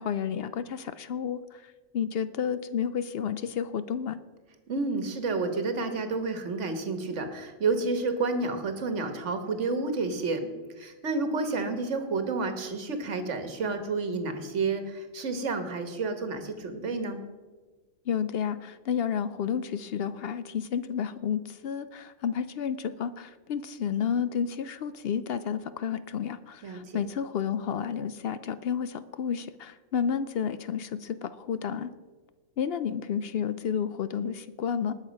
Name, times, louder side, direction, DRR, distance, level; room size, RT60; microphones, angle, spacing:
voice 1, 0.0-4.2 18.1-31.9 32.6-34.9, left 7 dB, 65° left, 14 dB, 0.6 m, -31 dB
voice 2, 4.7-10.5 10.8-17.2 26.6-27.0, right 3 dB, 60° right, 8 dB, 1.6 m, -30 dB
19.5 x 6.6 x 5.2 m, 1.3 s
omnidirectional pair, 1.4 m